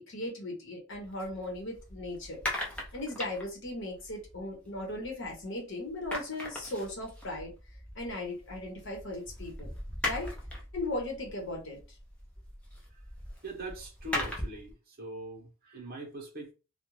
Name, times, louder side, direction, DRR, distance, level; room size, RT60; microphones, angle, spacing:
voice 1, 0.0-2.4 2.9-7.5 7.9-9.7 10.0-10.3 10.7-12.0, left 1 dB, 55° left, 0.9 m, -37 dB
sound 1, 0.9-5.6 5.8-14.7, left 1 dB, 5° left, 0.6 m, -40 dB
voice 2, 13.4-16.5, right 2 dB, 40° right, 0.8 m, -42 dB
2.4 x 2.2 x 3.1 m
head